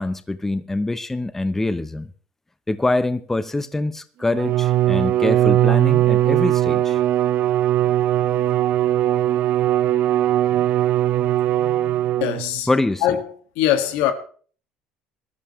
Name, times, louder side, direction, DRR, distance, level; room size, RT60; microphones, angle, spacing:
voice 1, 0.0-2.1 2.7-7.0 12.7-13.0, left 2 dB, 10° left, 0.8 m, -24 dB
Bowed string instrument, 4.3-12.6, right 13 dB, 60° right, 0.9 m, -19 dB
voice 2, 12.2-12.7 13.0-13.2 13.6-14.1, left 11 dB, 80° left, 1.9 m, -21 dB
20.0 x 13.0 x 3.2 m
supercardioid pair, 100°, 3 cm